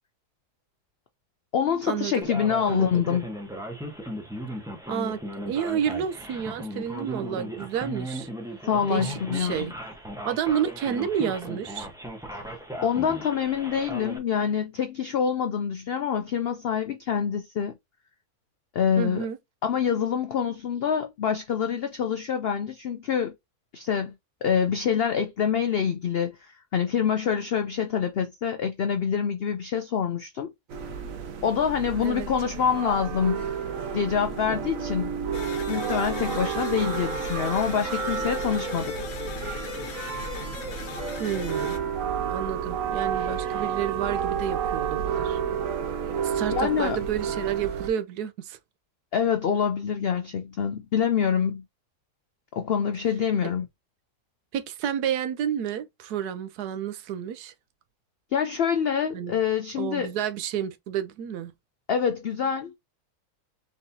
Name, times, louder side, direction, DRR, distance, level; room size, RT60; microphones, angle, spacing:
voice 1, 1.5-3.3 8.6-9.7 12.8-17.7 18.7-19.3 19.6-23.3 23.7-24.1 24.4-30.5 31.4-33.5 33.9-35.1 35.7-38.9 46.5-47.0 49.1-51.6 52.5-53.7 58.3-60.1 61.9-62.8, left 7 dB, 85° left, 0.5 m, -26 dB
Male speech man speaking, 2.2-14.2, right 1 dB, 5° right, 0.7 m, -37 dB
voice 2, 4.9-5.2 5.5-8.3 8.9-9.7 10.2-11.9 19.0-19.4 32.0-32.3 41.2-41.8 42.3-45.4 46.2-48.6 54.5-57.5 59.1-59.4 59.8-61.5, right 9 dB, 85° right, 1.2 m, -30 dB
sound 1, 30.7-47.9, right 7 dB, 65° right, 1.0 m, -31 dB
sound 2, 35.3-41.8, left 6 dB, 60° left, 1.1 m, -37 dB
4.0 x 3.6 x 2.7 m
omnidirectional pair, 1.6 m